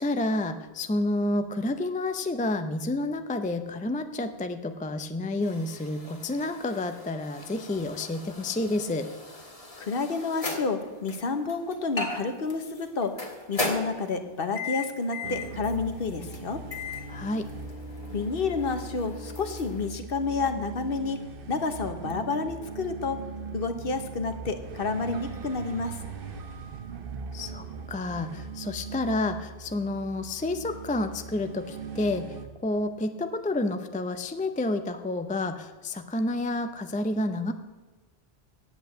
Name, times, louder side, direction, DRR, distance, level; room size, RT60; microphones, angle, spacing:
voice 1, 0.0-9.1 17.1-17.5 27.3-32.3 32.6-37.5, left 2 dB, 10° left, 8 dB, 0.4 m, -29 dB
sound 1, 5.4-19.9, left 3 dB, 35° left, 1.5 m, -38 dB
voice 2, 9.8-13.1 13.5-16.6 18.1-21.2 21.5-23.2 23.5-26.0, left 4 dB, 60° left, 8 dB, 1.1 m, -30 dB
sound 2, 15.2-32.5, right 5 dB, 60° right, 1.1 m, -40 dB
8.5 x 8.1 x 8.1 m, 1.3 s
omnidirectional pair, 1.1 m